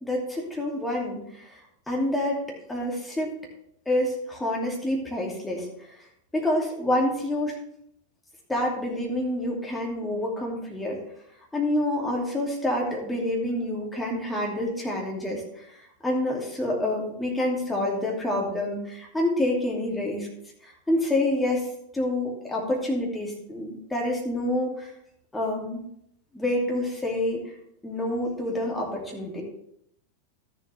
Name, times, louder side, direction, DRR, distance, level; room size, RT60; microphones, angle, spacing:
voice 1, 0.0-1.6 1.9-2.4 2.7-3.3 3.9-5.7 6.3-7.6 8.5-11.0 11.5-15.6 16.0-20.3 20.9-21.7 21.9-24.9 25.3-25.8 26.3-27.4 27.8-29.4, left 1 dB, 5° left, -2 dB, 2.6 m, -27 dB
13.0 x 7.1 x 3.4 m, 0.74 s
figure-of-eight pair, 90°, 0 cm